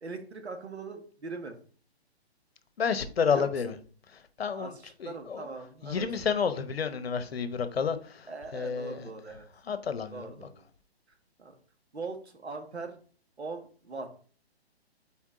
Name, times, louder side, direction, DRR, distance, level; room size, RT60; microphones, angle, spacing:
voice 1, 0.0-1.6 3.3-3.5 4.5-6.4 8.3-9.5 10.1-10.6 11.4-11.6 11.9-13.0 13.4-14.1, right 4 dB, 80° right, 1.5 m, -41 dB
voice 2, 2.8-3.7 4.4-4.7 5.0-5.5 5.8-8.3 8.5-9.0 9.7-10.3, left 6 dB, 65° left, 0.9 m, -30 dB
7.2 x 4.5 x 3.7 m
figure-of-eight pair, 135°, 32 cm